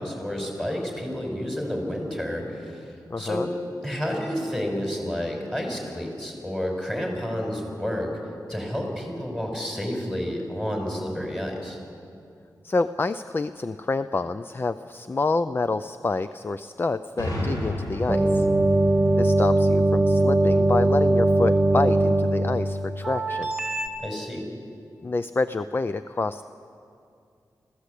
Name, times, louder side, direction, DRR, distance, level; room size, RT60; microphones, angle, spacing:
voice 1, 0.0-3.5 3.8-8.1 8.5-11.8 24.0-24.4, equal, 5° left, 0 dB, 5.7 m, -30 dB
voice 2, 3.1-3.5 12.6-18.5 19.2-23.5 25.0-26.5, left 3 dB, 30° left, 12 dB, 0.5 m, -27 dB
sound 1, 17.2-20.8, left 1 dB, 65° left, 4.7 m, -33 dB
sound 2, 18.1-23.9, right 2 dB, 10° right, 2.0 m, -21 dB
25.5 x 16.0 x 8.4 m, 2.5 s
wide cardioid pair, 105°, 7 cm